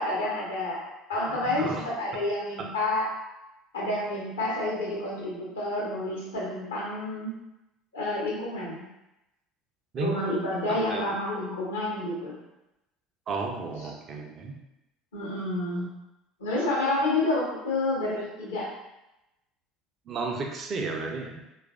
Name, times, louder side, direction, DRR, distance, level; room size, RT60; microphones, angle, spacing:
voice 1, 0.0-3.1 3.7-7.3 7.9-8.8 10.0-12.3 15.1-15.9 16.4-18.7, left 2 dB, 75° left, -4 dB, 0.8 m, -29 dB
voice 2, 1.4-1.8 2.6-2.7 9.9-10.2 10.7-11.0 13.3-14.6 20.1-21.5, right 4 dB, 40° right, 2 dB, 0.4 m, -33 dB
3.1 x 2.4 x 2.4 m, 0.92 s
figure-of-eight pair, 60°, 0 cm